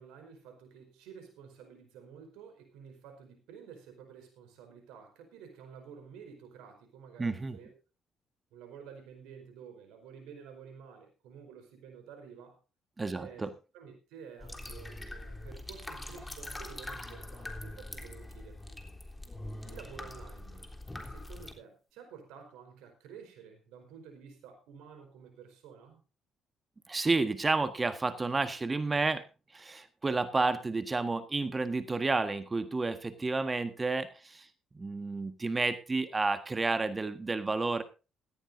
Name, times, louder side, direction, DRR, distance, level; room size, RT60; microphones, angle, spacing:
voice 1, 0.0-7.7 8.5-12.6 13.1-13.5 13.7-18.8 19.6-20.8 21.0-26.0, right 7 dB, 80° right, 5 dB, 4.6 m, -51 dB
voice 2, 7.2-7.6 13.0-13.5 26.9-29.2 29.5-34.5 34.7-37.8, right 3 dB, 30° right, 9 dB, 1.6 m, -31 dB
sound 1, 14.4-21.5, left 1 dB, 15° left, 3.4 m, -43 dB
17.5 x 14.5 x 2.7 m, 0.31 s
hypercardioid pair, 55°, 0 cm